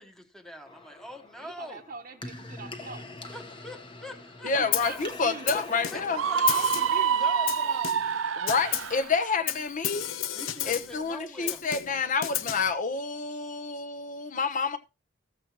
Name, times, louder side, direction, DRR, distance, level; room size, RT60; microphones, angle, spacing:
voice 1, 0.0-1.8 3.3-5.1 5.5-5.6 5.9-6.4 7.1-7.9 10.3-11.6, equal, ahead, 1.2 m, -43 dB
sound 1, 0.7-8.4, left 2 dB, 25° left, 1.2 m, -44 dB
voice 2, 1.4-3.1 4.6-5.0 5.2-5.6 6.5-7.2, right 3 dB, 45° right, 1.0 m, -42 dB
voice 3, 4.4-6.2 8.4-10.1 10.6-14.8, left 4 dB, 40° left, 0.9 m, -28 dB
Snare drum, 4.7-5.0 5.5-6.2 6.5-7.0 7.5-8.2 8.5-9.0 9.5-11.0 11.5-12.7, left 12 dB, 85° left, 0.6 m, -32 dB
Screaming, 6.1-9.1, right 7 dB, 80° right, 0.5 m, -26 dB
15.0 x 7.5 x 3.0 m
head